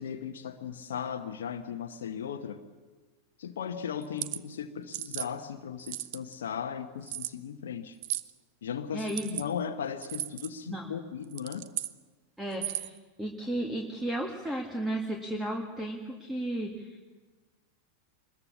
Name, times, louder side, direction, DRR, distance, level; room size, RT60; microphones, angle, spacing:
voice 1, 0.0-2.6 3.4-8.0 8.6-11.7, left 7 dB, 60° left, 5 dB, 1.1 m, -37 dB
sound 1, 4.0-4.4 4.9-5.3 5.8-6.3 7.1-7.3 8.0-8.3 9.0-9.4 10.0-10.5 11.2-11.9 12.5-13.0, right 15 dB, 50° right, 0.7 m, -35 dB
voice 2, 8.9-9.3 10.7-10.9 12.4-17.0, right 1 dB, 5° right, 3 dB, 1.9 m, -34 dB
23.5 x 21.0 x 7.1 m, 1.3 s
figure-of-eight pair, 90°, 0 cm